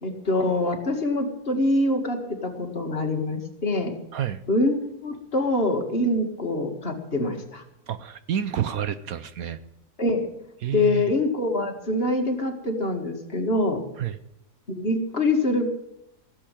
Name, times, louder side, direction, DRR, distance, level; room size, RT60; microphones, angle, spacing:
voice 1, 0.0-3.9 4.5-4.8 5.0-7.6 10.0-10.3 10.7-13.8 14.7-15.7, left 2 dB, 40° left, 3 dB, 2.2 m, -24 dB
voice 2, 4.1-4.4 7.9-9.6 10.6-11.1 14.0-14.2, right 9 dB, 65° right, 13 dB, 1.1 m, -29 dB
16.5 x 7.6 x 9.0 m, 0.82 s
omnidirectional pair, 1.7 m